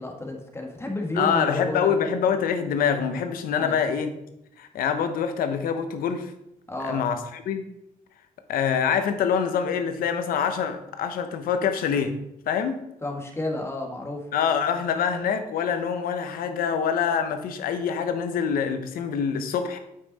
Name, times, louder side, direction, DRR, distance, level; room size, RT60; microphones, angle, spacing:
voice 1, 0.0-1.9 3.6-3.8 6.7-7.0 13.0-14.2, left 1 dB, 15° left, 1 dB, 1.7 m, -31 dB
voice 2, 1.1-4.1 4.6-6.3 6.8-7.6 8.5-12.1 12.5-12.8 14.3-19.8, left 7 dB, 85° left, 8 dB, 0.9 m, -25 dB
8.2 x 5.7 x 4.1 m, 0.83 s
cardioid pair, 90°, 15 cm